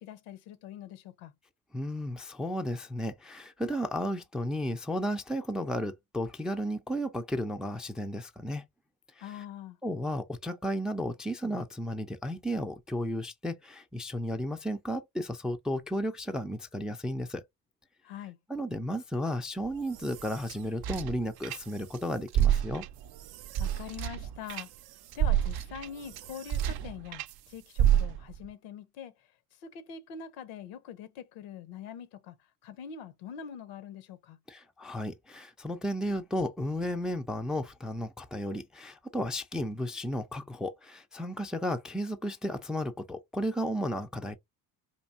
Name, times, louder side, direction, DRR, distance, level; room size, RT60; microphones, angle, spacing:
voice 1, 0.0-1.3 9.2-9.8 18.0-18.4 23.6-24.7 25.1-29.1 29.6-32.4 32.6-34.4, left 8 dB, 75° left, 0.9 m, -44 dB
voice 2, 1.7-8.6 9.2-9.3 9.8-17.4 18.5-22.8 34.5-44.3, equal, ahead, 0.4 m, -33 dB
sound 1, 19.6-22.0 22.3-27.3 27.8-28.5, right 10 dB, 50° right, 0.6 m, -30 dB
4.4 x 2.6 x 2.5 m
hypercardioid pair, 70°, 48 cm